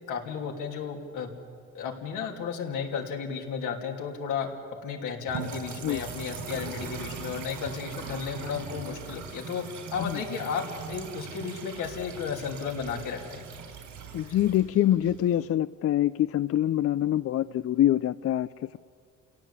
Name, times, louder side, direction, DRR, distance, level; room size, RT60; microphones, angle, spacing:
voice 1, 0.0-1.3 1.7-4.5 4.8-9.6 9.9-13.4, left 6 dB, 85° left, 2 dB, 3.1 m, -33 dB
sound 1, 5.3-15.4, right 5 dB, 75° right, 4.7 m, -40 dB
voice 2, 14.1-18.5, left 12 dB, 50° left, 15 dB, 0.5 m, -25 dB
28.5 x 17.5 x 8.3 m, 2.2 s
cardioid pair, 90°, 30 cm